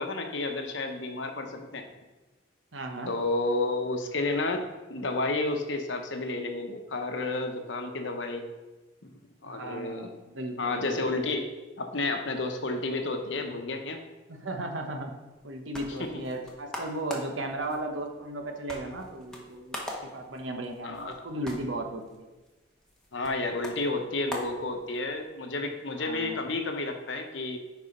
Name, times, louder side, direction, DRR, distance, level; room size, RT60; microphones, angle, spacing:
voice 1, 0.0-1.9 3.1-4.6 4.9-8.4 9.4-10.1 10.6-11.5 11.8-14.0 20.8-21.3 23.1-27.6, left 2 dB, 75° left, 5 dB, 0.9 m, -31 dB
voice 2, 2.7-3.1 9.4-11.0 14.3-15.1 15.4-22.3 26.0-26.4, right 1 dB, 85° right, 3 dB, 1.1 m, -36 dB
sound 1, 15.3-25.3, left 1 dB, 5° left, 0.9 m, -43 dB
6.9 x 4.7 x 5.3 m, 1.1 s
head